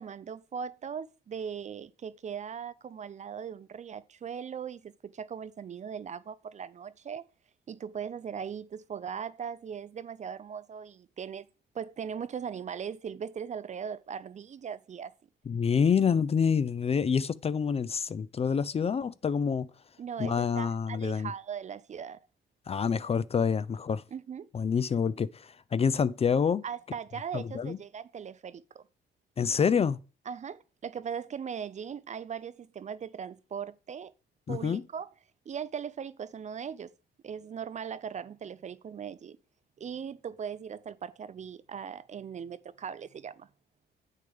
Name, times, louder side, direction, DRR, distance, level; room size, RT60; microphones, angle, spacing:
voice 1, 0.0-7.2 7.7-11.5 11.7-15.1 20.0-22.2 24.1-24.5 26.6-28.8 30.3-34.1 34.5-35.1 35.5-36.9 37.2-39.4 39.8-43.5, right 7 dB, 35° right, 0.4 m, -39 dB
voice 2, 15.5-19.7 20.2-21.3 22.7-24.0 24.5-26.6 27.3-27.8 29.4-30.0 34.5-34.8, left 6 dB, 30° left, 0.4 m, -27 dB
8.5 x 6.5 x 3.5 m
cardioid pair, 90°, 20 cm